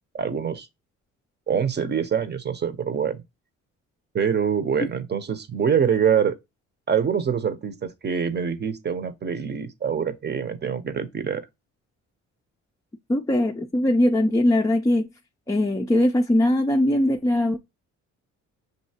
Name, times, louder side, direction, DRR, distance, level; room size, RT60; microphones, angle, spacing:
voice 1, 0.1-0.7 1.5-3.2 4.1-6.3 6.9-11.4, right 7 dB, 35° right, 0.8 m, -25 dB
voice 2, 13.1-15.1 15.5-17.6, left 1 dB, 10° left, 0.4 m, -21 dB
6.6 x 2.7 x 2.8 m
cardioid pair, 90°, 30 cm